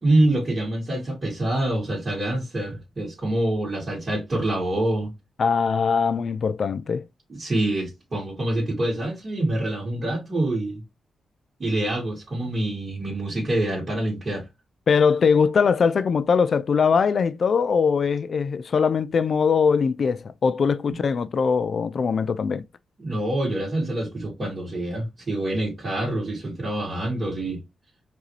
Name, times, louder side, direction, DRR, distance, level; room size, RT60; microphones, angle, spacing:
voice 1, 0.0-5.1 7.3-10.8 11.6-14.5 23.0-27.6, right 1 dB, 35° right, 2.1 m, -26 dB
voice 2, 5.4-7.1 14.9-22.6, left 6 dB, 55° left, 0.4 m, -21 dB
4.9 x 2.7 x 3.1 m
cardioid pair, 105°, 0 cm